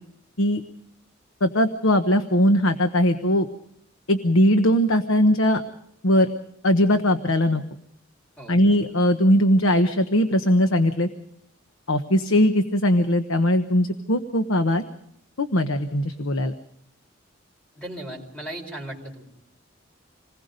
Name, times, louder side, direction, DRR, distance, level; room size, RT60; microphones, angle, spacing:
voice 1, 1.4-3.5 4.1-5.6 6.0-6.3 6.6-7.6 8.5-11.1 11.9-14.8 15.4-16.5, equal, 85° left, 8 dB, 1.2 m, -20 dB
voice 2, 17.7-19.2, right 1 dB, 5° left, 0 dB, 4.6 m, -36 dB
27.5 x 20.5 x 5.2 m, 0.72 s
head